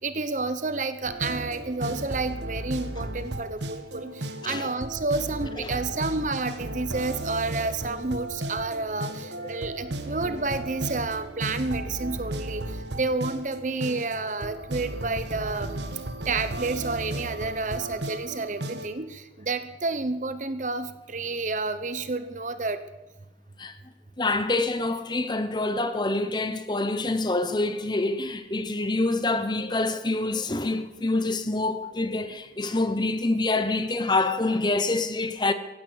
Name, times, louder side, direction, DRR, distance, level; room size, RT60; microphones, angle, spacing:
voice 1, 0.0-15.8 16.2-22.8, right 3 dB, 45° right, 0.9 m, -30 dB
sound 1, 1.0-18.9, right 1 dB, 75° right, 1.3 m, -35 dB
voice 2, 24.2-35.5, left 2 dB, 25° left, 0.9 m, -26 dB
15.5 x 11.0 x 8.1 m
head